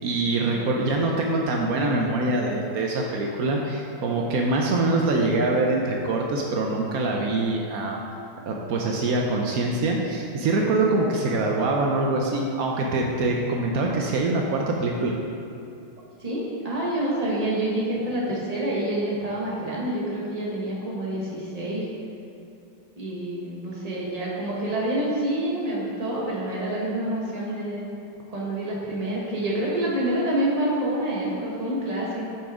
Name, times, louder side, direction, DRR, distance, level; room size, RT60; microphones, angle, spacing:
voice 1, 0.0-8.0 8.4-15.1, right 2 dB, 90° right, 0 dB, 0.7 m, -24 dB
voice 2, 16.2-21.9 23.0-27.8 28.3-32.3, right 1 dB, 20° right, -5 dB, 1.2 m, -27 dB
7.2 x 6.0 x 4.9 m, 2.6 s
omnidirectional pair, 2.4 m